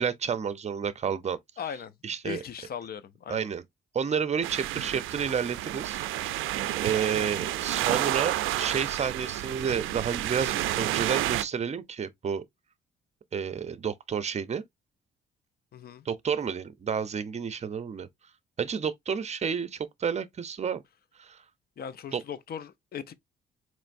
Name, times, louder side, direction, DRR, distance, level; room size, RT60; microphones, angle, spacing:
voice 1, 0.0-1.4 2.0-2.4 3.3-3.6 3.9-6.4 6.8-12.4 13.3-14.6 16.0-18.1 18.6-20.8 21.2-21.4 22.1-22.2, right 7 dB, 35° right, 0.6 m, -30 dB
voice 2, 1.6-1.9 2.2-3.5 15.7-16.0 21.8-23.1, left 8 dB, 50° left, 0.6 m, -38 dB
sound 1, 4.4-11.4, right 14 dB, 85° right, 0.4 m, -30 dB
4.3 x 3.1 x 2.5 m
cardioid pair, 90°, 20 cm